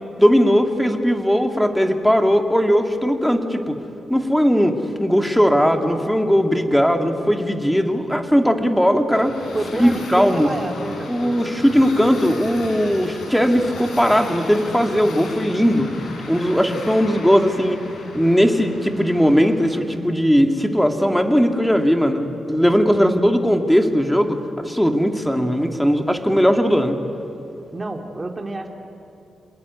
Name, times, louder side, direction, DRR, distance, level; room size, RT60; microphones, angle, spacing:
voice 1, 0.2-3.8 4.1-9.3 9.8-10.5 11.1-15.9 16.3-17.8 18.1-27.0, equal, ahead, 5 dB, 2.4 m, -18 dB
sound 1, 9.1-19.8, left 2 dB, 85° left, 5.6 m, -34 dB
voice 2, 9.5-11.1 16.6-16.8 23.0-23.3 27.7-28.7, right 2 dB, 25° right, 3 dB, 2.4 m, -29 dB
27.0 x 20.5 x 9.7 m, 2.7 s
cardioid pair, 85°, 0 cm